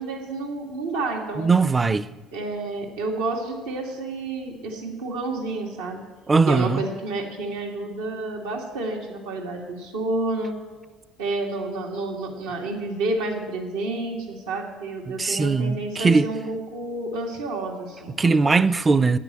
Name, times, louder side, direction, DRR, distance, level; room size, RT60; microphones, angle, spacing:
voice 1, 0.0-1.5 2.3-6.0 6.5-10.6 11.2-18.6, right 2 dB, 90° right, 2.3 m, -30 dB
voice 2, 1.4-2.1 6.3-6.9 15.1-16.3 18.2-19.2, right 4 dB, 25° right, 0.5 m, -20 dB
9.9 x 9.0 x 7.5 m
hypercardioid pair, 70°, 0 cm